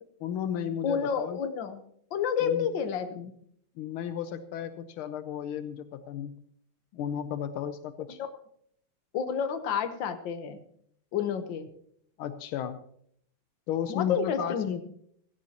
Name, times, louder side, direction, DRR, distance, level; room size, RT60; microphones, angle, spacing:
voice 1, 0.2-1.4 2.4-2.7 3.8-6.4 6.9-8.2 12.2-12.9 13.7-14.8, left 9 dB, 85° left, 10 dB, 1.6 m, -34 dB
voice 2, 0.8-1.8 2.1-3.3 8.2-8.3 9.1-10.6 11.1-11.7 13.9-14.8, left 7 dB, 65° left, 8 dB, 1.7 m, -30 dB
16.0 x 15.5 x 2.9 m, 0.67 s
omnidirectional pair, 2.3 m